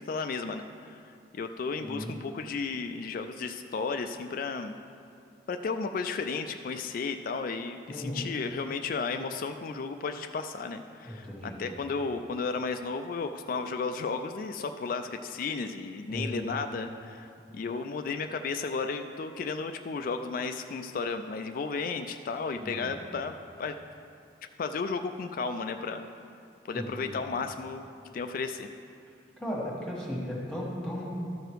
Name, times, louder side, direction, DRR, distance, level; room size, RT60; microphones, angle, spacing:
voice 1, 0.0-4.7 5.5-23.8 24.6-26.1 26.7-27.9 28.1-28.7, left 4 dB, 50° left, 7 dB, 0.3 m, -34 dB
voice 2, 1.7-2.2 7.9-8.3 11.0-11.6 16.1-16.5 22.6-22.9 26.7-27.2 29.4-31.1, equal, 5° left, -6 dB, 1.4 m, -36 dB
13.0 x 5.0 x 4.6 m, 2.5 s
head